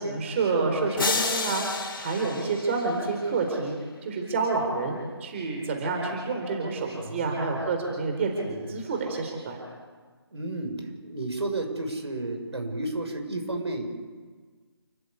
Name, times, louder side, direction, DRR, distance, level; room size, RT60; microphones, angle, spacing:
voice 1, 0.0-1.6 2.0-3.7 4.0-9.6, right 4 dB, 30° right, 1 dB, 4.3 m, -28 dB
sound 1, 1.0-3.3, left 4 dB, 55° left, 3.6 m, -30 dB
voice 2, 7.0-7.4 8.4-8.6 10.3-13.9, right 2 dB, 75° right, 4 dB, 6.6 m, -32 dB
29.5 x 15.0 x 8.4 m, 1.5 s
figure-of-eight pair, 160°, 14 cm